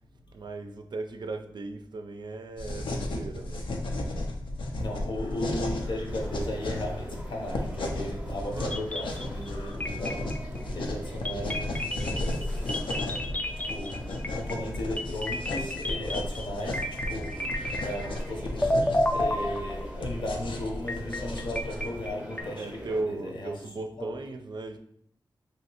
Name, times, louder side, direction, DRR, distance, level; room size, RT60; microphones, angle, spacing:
voice 1, 0.3-3.7 8.4-8.9 22.5-24.8, right 3 dB, 60° right, 0.4 m, -37 dB
sound 1, 2.6-22.1, left 1 dB, 90° left, 0.4 m, -34 dB
voice 2, 4.8-13.3 13.6-17.5 17.8-23.6 24.0-24.1, left 1 dB, 70° left, 0.8 m, -36 dB
sound 2, 6.1-23.0, right 1 dB, 15° right, 0.7 m, -44 dB
sound 3, 8.7-9.5 9.8-10.6 11.3-18.3 18.6-20.1 20.9-22.4, left 1 dB, 15° left, 0.3 m, -31 dB
3.1 x 2.8 x 2.9 m
wide cardioid pair, 70°, 8 cm